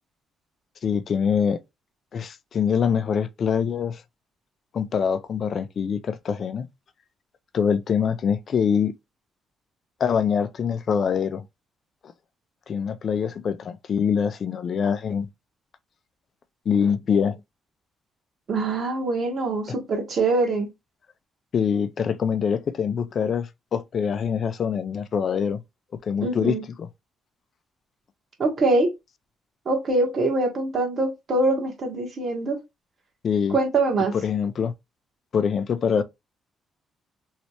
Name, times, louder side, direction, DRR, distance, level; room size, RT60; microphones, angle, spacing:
voice 1, 0.8-1.6 2.1-4.0 4.7-6.7 7.5-8.9 10.0-11.4 12.7-15.3 16.7-17.4 21.5-25.6 26.0-26.9 33.2-33.6 34.2-34.7 35.3-36.0, left 7 dB, 55° left, 0.4 m, -24 dB
voice 2, 18.5-20.7 26.2-26.6 28.4-28.9 29.6-32.6 33.5-34.2, right 2 dB, 50° right, 1.3 m, -23 dB
3.2 x 3.0 x 2.8 m
cardioid pair, 90°, 0 cm